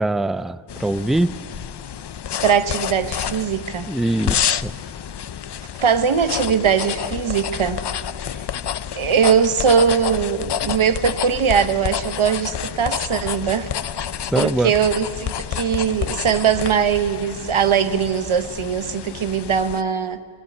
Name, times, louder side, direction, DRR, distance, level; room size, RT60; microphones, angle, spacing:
voice 1, 0.0-1.3 3.9-4.7 14.2-14.7, right 1 dB, ahead, 15 dB, 0.4 m, -22 dB
sound 1, 0.7-19.8, left 9 dB, 60° left, 0.6 m, -29 dB
voice 2, 2.4-3.9 5.8-7.8 9.0-13.7 13.9-14.1 14.3-20.2, right 7 dB, 85° right, 11 dB, 1.0 m, -20 dB
20.5 x 17.5 x 8.6 m, 2.3 s
wide cardioid pair, 50°, 47 cm